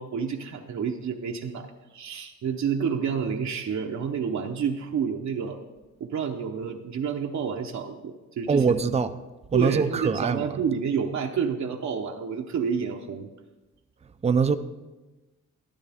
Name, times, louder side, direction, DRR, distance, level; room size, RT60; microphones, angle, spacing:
voice 1, 0.0-1.7 1.9-5.6 6.0-8.8 9.5-13.3, right 6 dB, 60° right, 0.9 m, -29 dB
voice 2, 8.5-9.1 9.5-10.6 14.2-14.6, right 5 dB, 20° right, 0.5 m, -23 dB
12.5 x 12.0 x 3.5 m
cardioid pair, 105°, 32 cm